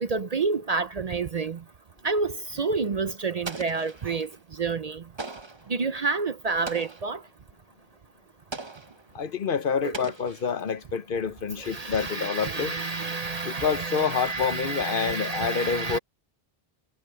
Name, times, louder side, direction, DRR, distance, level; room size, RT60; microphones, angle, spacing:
voice 1, 0.0-1.6 2.0-4.3 4.6-5.0 5.7-7.2 9.8-10.0 11.6-16.0, right 4 dB, 45° right, 0.6 m, -29 dB
Explosion, 3.4-4.4 5.2-5.7 6.7-7.2 8.5-9.1 9.9-10.8, right 3 dB, 25° right, 1.1 m, -39 dB
voice 2, 9.1-12.7 13.4-16.0, left 6 dB, 60° left, 1.0 m, -27 dB
omnidirectional pair, 1.0 m